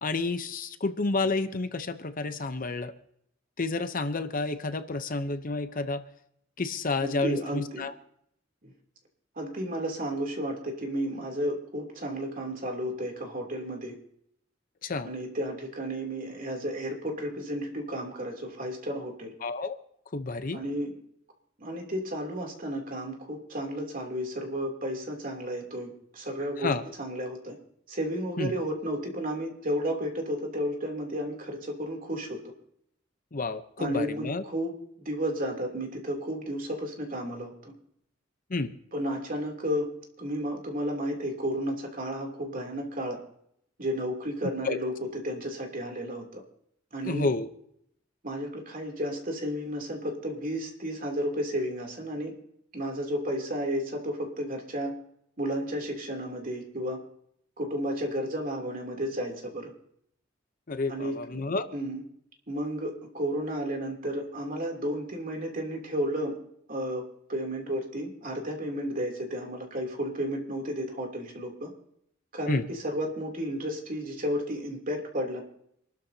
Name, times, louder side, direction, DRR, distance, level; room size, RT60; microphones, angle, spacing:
voice 1, 0.0-2.9 3.6-6.0 6.6-7.9 14.8-15.1 19.4-19.8 20.1-20.6 26.6-26.8 28.4-28.5 33.3-34.4 38.5-38.7 44.4-44.8 47.0-47.5 60.7-61.7 72.5-72.7, left 3 dB, 45° left, 10 dB, 0.8 m, -30 dB
voice 2, 7.0-7.8 8.6-8.7 9.3-14.0 15.0-19.3 20.5-20.9 21.6-26.7 27.0-27.5 27.9-32.4 33.8-34.7 35.0-37.7 38.9-39.9 40.2-43.2 43.8-46.4 46.9-47.3 48.2-52.3 52.7-54.9 55.4-57.0 57.6-59.7 60.9-62.0 62.5-66.4 66.7-67.0 67.3-71.7 72.3-75.4, equal, 45° right, 1 dB, 3.1 m, -32 dB
26.5 x 13.0 x 2.8 m, 0.72 s
head